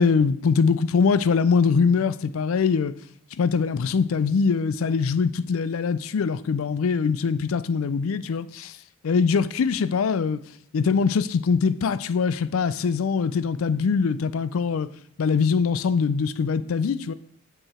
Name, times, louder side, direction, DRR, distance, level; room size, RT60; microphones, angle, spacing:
voice 1, 0.0-2.9 3.4-8.8 9.0-10.4 10.7-14.9 15.2-17.1, left 5 dB, 75° left, 0.4 m, -22 dB
7.8 x 4.7 x 4.3 m
head